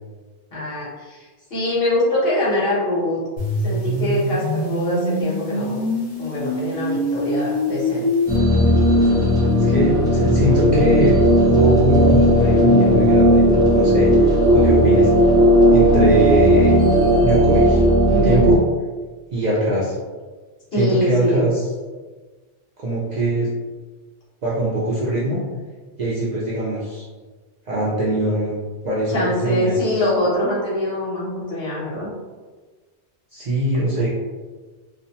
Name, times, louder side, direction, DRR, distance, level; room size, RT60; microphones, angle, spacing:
voice 1, 0.5-3.2 3.6-5.9 6.2-8.1 18.1-18.5 20.7-21.4 29.1-32.1, left 1 dB, 60° left, -7 dB, 1.1 m, -23 dB
sound 1, 3.4-8.4, left 1 dB, 90° left, 1.1 m, -24 dB
sound 2, 8.3-18.6, equal, 5° right, 0.8 m, -15 dB
voice 2, 9.6-14.1 14.5-15.1 15.7-16.8 17.2-17.8 18.1-18.6 19.3-20.0 20.7-21.6 22.8-23.5 24.4-25.4 26.0-27.0 27.7-28.6 28.8-30.1 33.3-34.1, right 1 dB, 55° right, -7 dB, 0.5 m, -22 dB
2.5 x 2.1 x 2.7 m, 1.3 s
omnidirectional pair, 1.2 m